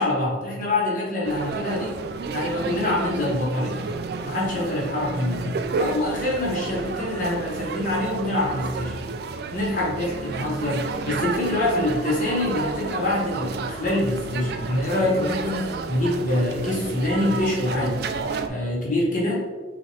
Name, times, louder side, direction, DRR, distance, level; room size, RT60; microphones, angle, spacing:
voice 1, 0.0-2.0 2.3-3.8 4.2-9.0 9.5-18.0 18.4-19.5, left 1 dB, 45° left, -4 dB, 1.3 m, -25 dB
sound 1, 1.2-18.5, right 4 dB, 55° right, 0.3 m, -31 dB
6.1 x 2.5 x 3.3 m, 1.3 s
head